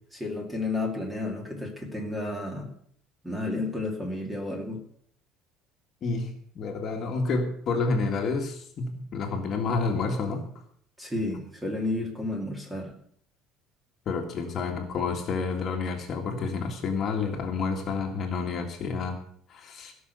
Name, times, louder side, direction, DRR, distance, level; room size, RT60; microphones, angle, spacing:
voice 1, 0.1-2.7 3.2-4.8 11.0-12.9, left 2 dB, 5° right, 2 dB, 2.4 m, -32 dB
voice 2, 6.6-10.4 14.1-19.2 19.5-19.9, left 4 dB, 35° left, 3 dB, 1.9 m, -29 dB
16.5 x 6.3 x 8.1 m, 0.62 s
cardioid pair, 175°, 0 cm